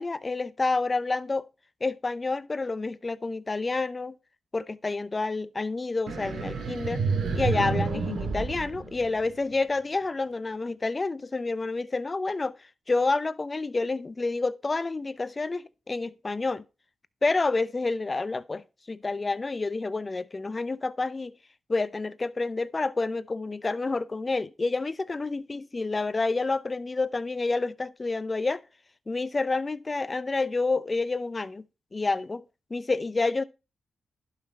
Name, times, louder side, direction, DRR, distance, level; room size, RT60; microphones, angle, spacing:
voice 1, 0.0-1.5 1.8-4.1 4.5-7.0 7.3-12.6 12.9-16.6 17.2-21.3 21.7-28.6 29.1-31.6 31.9-32.4 32.7-33.4, left 3 dB, 35° left, 0.6 m, -29 dB
sound 1, 6.1-9.5, right 4 dB, 75° right, 2.0 m, -30 dB
11.5 x 5.8 x 4.1 m
supercardioid pair, 55°, 0 cm